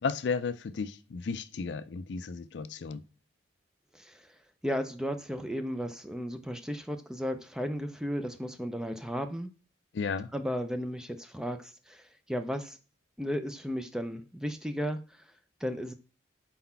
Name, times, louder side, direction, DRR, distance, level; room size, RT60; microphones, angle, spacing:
voice 1, 0.0-3.0 9.9-10.3, left 5 dB, 65° left, 0.4 m, -33 dB
voice 2, 3.9-4.4 4.6-9.5 10.3-12.8 13.2-15.2 15.6-15.9, equal, 5° right, 0.4 m, -34 dB
4.2 x 4.0 x 5.6 m
head